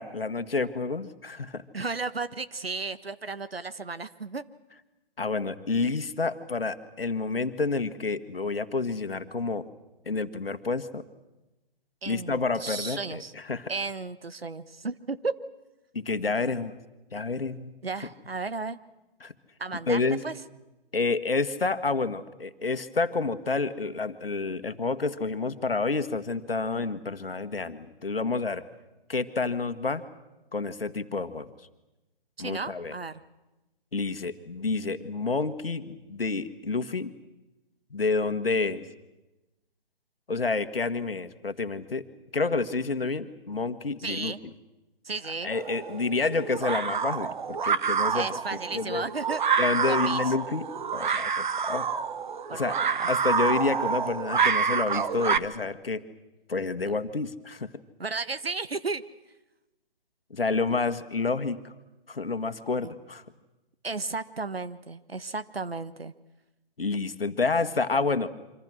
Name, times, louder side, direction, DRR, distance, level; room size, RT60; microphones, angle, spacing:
voice 1, 0.0-1.6 5.2-9.6 10.1-11.0 12.0-13.7 15.9-16.8 17.1-17.7 19.2-19.3 19.9-20.2 20.9-28.6 29.1-30.1 30.5-31.5 32.4-32.9 33.9-37.1 37.9-38.9 40.3-42.0 42.3-44.3 45.2-48.4 48.7-49.0 49.6-51.9 52.5-52.7 53.1-56.0 56.5-57.7 60.3-61.7 62.1-63.2 66.8-68.3, left 4 dB, 70° left, 11 dB, 1.8 m, -29 dB
voice 2, 1.7-4.5 12.0-13.3 13.7-15.4 17.8-18.8 19.6-20.3 32.4-33.2 44.0-44.4 45.0-45.5 48.1-49.4 49.9-50.3 52.5-53.1 58.0-59.0 62.8-62.9 63.8-66.1, right 4 dB, 80° right, 13 dB, 1.4 m, -34 dB
sound 1, 45.5-55.4, right 6 dB, 55° right, 1.1 m, -28 dB
27.0 x 25.5 x 6.3 m, 1.0 s
figure-of-eight pair, 140°, 30 cm